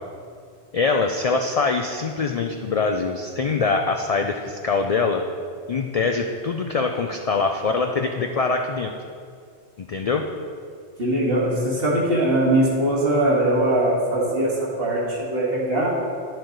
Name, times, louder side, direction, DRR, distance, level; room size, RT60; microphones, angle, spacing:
voice 1, 0.7-5.2 5.7-8.9 9.8-10.3, left 4 dB, 60° left, 4 dB, 0.4 m, -23 dB
voice 2, 11.0-15.9, right 1 dB, 60° right, -5 dB, 2.1 m, -21 dB
10.5 x 6.5 x 3.9 m, 2.2 s
omnidirectional pair, 1.1 m